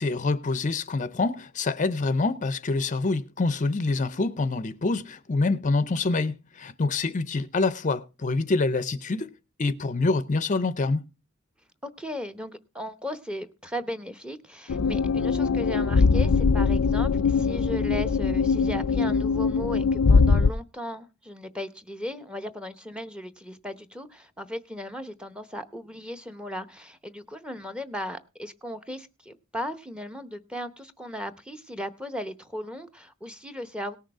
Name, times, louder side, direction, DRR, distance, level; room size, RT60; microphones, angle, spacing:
voice 1, 0.0-9.3 9.6-11.0, left 3 dB, 35° left, 0.6 m, -26 dB
voice 2, 11.8-34.0, equal, 5° right, 0.8 m, -36 dB
sound 1, 14.7-20.5, left 4 dB, 90° left, 0.5 m, -22 dB
18.5 x 6.4 x 4.7 m
head